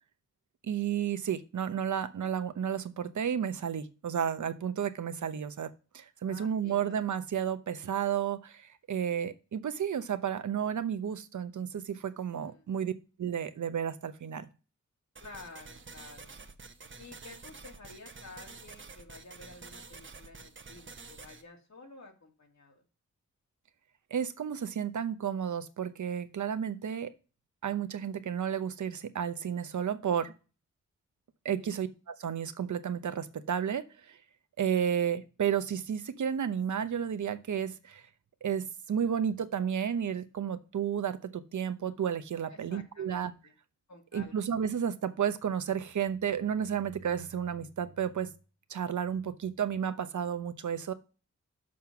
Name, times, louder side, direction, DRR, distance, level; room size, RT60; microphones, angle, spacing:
voice 1, 0.6-12.9 13.2-14.5 24.1-27.1 27.6-30.3 31.4-34.2 34.6-38.0 38.4-43.3 44.1-48.3 48.7-50.9, right 8 dB, 70° right, 11 dB, 0.8 m, -32 dB
voice 2, 6.3-6.9 12.2-12.7 15.2-16.4 17.0-22.8 31.6-31.8 42.5-43.6 43.9-44.4, left 3 dB, 65° left, 2 dB, 2.3 m, -52 dB
sound 1, 15.2-21.4, right 4 dB, 40° right, 1.0 m, -49 dB
6.4 x 5.5 x 5.8 m, 0.34 s
cardioid pair, 45°, 30 cm